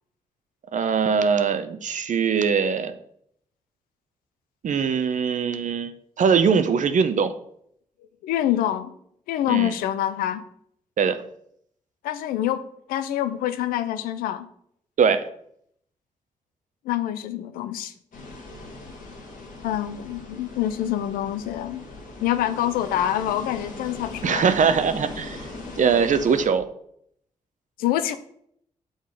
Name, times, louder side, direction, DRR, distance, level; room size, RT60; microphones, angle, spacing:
voice 1, 0.7-2.9 4.6-5.9 6.2-7.3 9.5-9.7 11.0-11.2 15.0-15.3 24.2-25.4 25.8-26.7, right 6 dB, 60° right, 10 dB, 0.6 m, -21 dB
voice 2, 8.2-8.9 9.3-10.4 12.0-12.6 12.9-14.5 16.9-17.9 19.6-21.8 22.2-24.5 27.8-28.2, left 12 dB, 90° left, 11 dB, 0.4 m, -26 dB
sound 1, 18.1-26.5, left 2 dB, 70° left, 1.4 m, -39 dB
6.3 x 3.9 x 4.8 m, 0.69 s
supercardioid pair, 40°, 15 cm